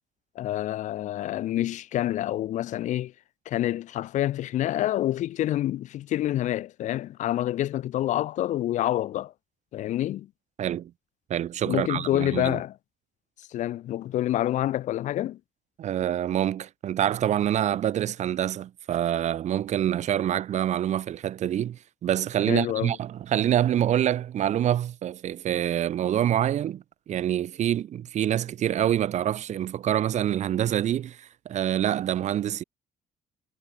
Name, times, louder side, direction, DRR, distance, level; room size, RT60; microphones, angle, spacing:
voice 1, 0.4-3.1 3.5-9.3 9.7-10.3 11.7-12.7 13.5-15.4 22.5-23.0, left 13 dB, 60° left, 0.5 m, -27 dB
voice 2, 10.6-10.9 11.3-12.6 15.8-32.6, right 11 dB, 55° right, 1.8 m, -26 dB
cardioid pair, 165°, 14 cm